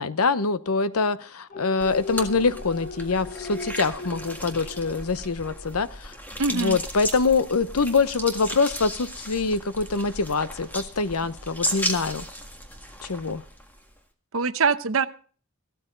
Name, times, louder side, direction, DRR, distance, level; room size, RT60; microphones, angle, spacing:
voice 1, 0.0-6.1 6.5-12.2 13.0-13.4, left 4 dB, 85° left, 14 dB, 0.9 m, -24 dB
sound 1, 1.5-6.0 6.4-6.5, left 2 dB, 35° left, 1.0 m, -39 dB
sound 2, 1.8-14.0, equal, 10° left, 1.7 m, -35 dB
voice 2, 6.4-6.8 14.3-15.1, right 4 dB, 65° right, 12 dB, 0.8 m, -23 dB
15.5 x 13.0 x 3.9 m, 0.41 s
head